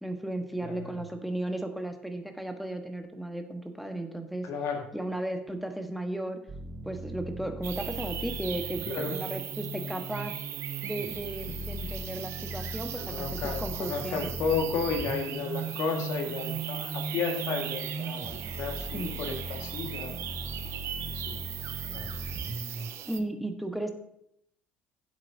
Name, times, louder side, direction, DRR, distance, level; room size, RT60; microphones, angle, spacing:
voice 1, 0.0-4.5 4.9-6.4 6.8-10.3 10.8-14.3 18.9-19.2 23.1-23.9, right 1 dB, ahead, 5 dB, 1.6 m, -35 dB
voice 2, 0.6-0.9 4.4-4.9 8.9-9.2 11.5-11.6 12.9-20.1 21.1-21.4 21.9-22.1, left 5 dB, 55° left, 3 dB, 2.1 m, -33 dB
sound 1, 6.5-22.9, right 2 dB, 25° right, 1.1 m, -39 dB
sound 2, 7.6-23.2, right 11 dB, 50° right, 0.9 m, -39 dB
15.5 x 7.7 x 2.9 m, 0.75 s
figure-of-eight pair, 55°, 6 cm